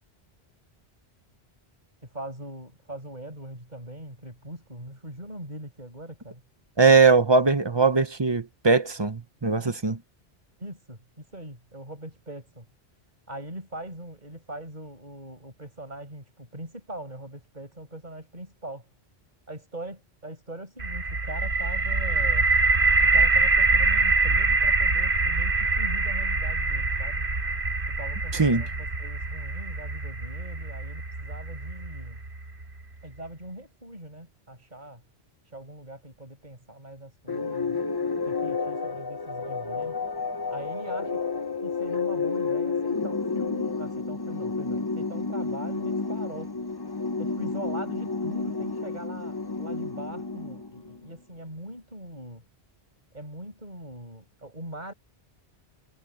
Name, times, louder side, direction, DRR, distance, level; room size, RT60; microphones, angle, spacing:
voice 1, 2.1-6.4 9.5-10.0 10.6-12.7 13.3-18.8 19.5-22.5 23.0-27.2 27.9-32.2 33.0-35.0 35.5-37.8 38.2-40.0 40.5-41.2 41.6-46.5 47.2-52.4 53.1-54.9, right 1 dB, 45° right, 6.8 m, -41 dB
voice 2, 6.8-9.9 28.4-28.6, right 4 dB, 25° right, 0.8 m, -20 dB
sound 1, 20.8-32.6, right 3 dB, 85° right, 2.8 m, -24 dB
sound 2, 37.3-51.0, left 4 dB, 25° left, 0.8 m, -30 dB
omnidirectional pair, 1.1 m